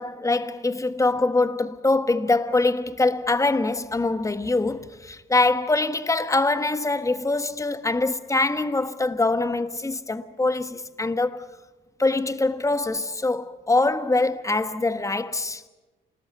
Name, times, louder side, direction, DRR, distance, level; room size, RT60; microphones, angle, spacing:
voice 1, 0.0-11.5 12.0-15.6, left 2 dB, 15° left, 1.4 m, -24 dB
28.0 x 20.0 x 9.5 m
cardioid pair, 90°, 20 cm